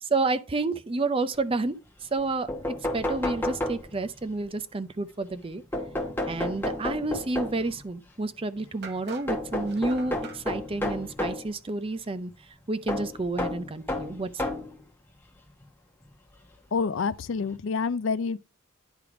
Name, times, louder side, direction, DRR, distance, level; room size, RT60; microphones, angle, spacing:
voice 1, 0.0-1.8 2.1-5.6 6.3-12.3 12.7-14.3, right 3 dB, 25° right, 0.5 m, -30 dB
sound 1, 2.2-2.3 2.5-4.2 5.7-7.8 9.3-11.5 12.9-14.8 15.6-15.7 17.0-17.1 17.5-17.6, left 1 dB, 10° left, 1.0 m, -31 dB
sound 2, 8.0-8.1 8.8-10.4, right 2 dB, 50° right, 1.0 m, -42 dB
voice 2, 16.7-18.4, left 5 dB, 65° left, 0.4 m, -27 dB
10.0 x 3.4 x 4.6 m
head